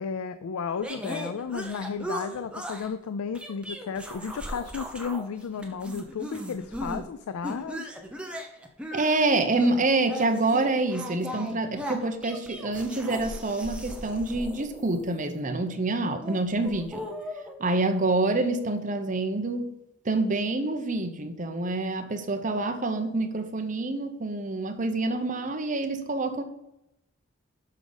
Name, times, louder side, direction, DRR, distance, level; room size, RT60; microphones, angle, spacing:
voice 1, 0.0-7.9, left 6 dB, 90° left, 0.4 m, -33 dB
sound 1, 0.8-2.9 3.3-5.2 5.5-7.0 7.4-15.4 16.1-17.5, equal, 5° right, 0.7 m, -38 dB
voice 2, 8.9-17.1 17.6-19.8 20.0-26.4, right 2 dB, 35° right, 0.7 m, -27 dB
12.0 x 5.0 x 3.9 m
head